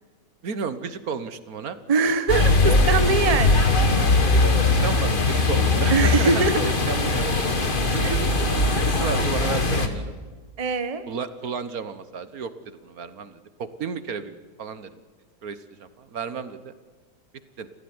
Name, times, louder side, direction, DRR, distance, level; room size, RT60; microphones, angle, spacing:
voice 1, 0.4-1.8 4.6-6.4 6.9-7.4 7.9-10.1 11.1-15.0 15.4-16.7 17.6-17.7, right 6 dB, 60° right, 12 dB, 1.6 m, -32 dB
voice 2, 1.9-3.7 5.9-6.7 8.0-8.1 10.6-11.0, right 4 dB, 25° right, 10 dB, 1.2 m, -22 dB
sound 1, 2.3-9.9, left 3 dB, 30° left, 1.9 m, -20 dB
29.5 x 15.0 x 9.6 m, 1.4 s
omnidirectional pair, 1.8 m